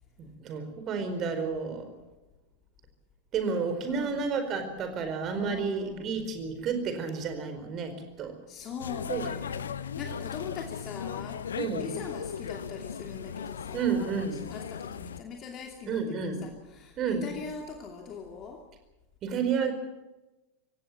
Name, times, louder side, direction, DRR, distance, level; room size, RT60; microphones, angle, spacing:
voice 1, 0.2-1.9 3.3-8.3 9.1-9.3 11.6-11.9 13.7-14.5 15.9-16.4 17.0-17.2 19.2-19.7, right 5 dB, 30° right, 8 dB, 4.6 m, -31 dB
voice 2, 3.9-4.3 5.4-6.1 8.5-18.6, left 5 dB, 30° left, 2 dB, 2.8 m, -42 dB
sound 1, 8.8-15.2, left 7 dB, 65° left, 0.9 m, -37 dB
26.0 x 17.0 x 7.6 m, 1.0 s
figure-of-eight pair, 90°, 0 cm